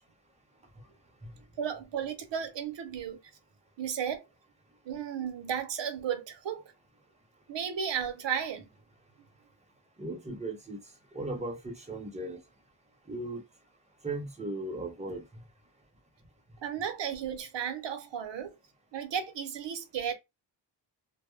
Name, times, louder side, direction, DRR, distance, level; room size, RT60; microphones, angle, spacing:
voice 1, 1.6-3.2 3.8-4.2 4.8-6.7 7.5-8.7 16.6-18.6 18.9-20.1, right 8 dB, 65° right, 0.6 m, -34 dB
voice 2, 10.0-10.8 11.1-12.4 13.1-13.4 14.0-15.2, right 2 dB, 15° right, 0.4 m, -37 dB
2.1 x 2.0 x 3.0 m
wide cardioid pair, 170°, 48 cm